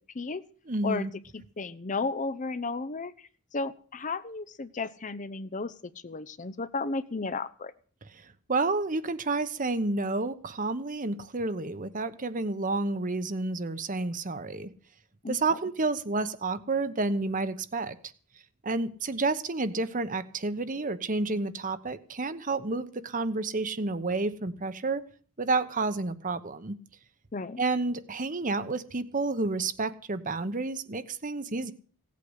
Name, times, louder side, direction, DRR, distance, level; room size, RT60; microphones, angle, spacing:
voice 1, 0.7-1.1 8.5-14.7 15.3-18.0 18.6-25.0 25.4-26.7 27.6-31.7, right 3 dB, 35° right, 12 dB, 1.0 m, -30 dB
voice 2, 1.6-3.1 3.5-5.7 6.0-7.7 15.2-15.4 27.3-27.6, left 3 dB, 35° left, 14 dB, 0.7 m, -33 dB
17.0 x 8.5 x 8.0 m, 0.44 s
head